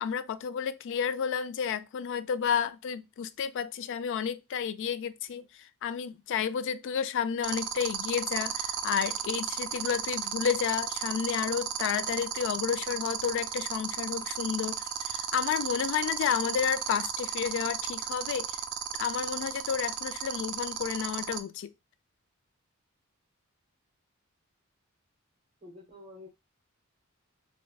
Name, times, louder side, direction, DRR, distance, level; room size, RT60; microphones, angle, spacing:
voice 1, 0.0-18.6 19.0-21.7, left 7 dB, 60° left, 0.3 m, -31 dB
sound 1, 7.4-21.4, right 10 dB, 90° right, 0.4 m, -33 dB
voice 2, 25.6-26.3, left 2 dB, 30° right, 1.0 m, -48 dB
3.2 x 2.6 x 2.2 m
head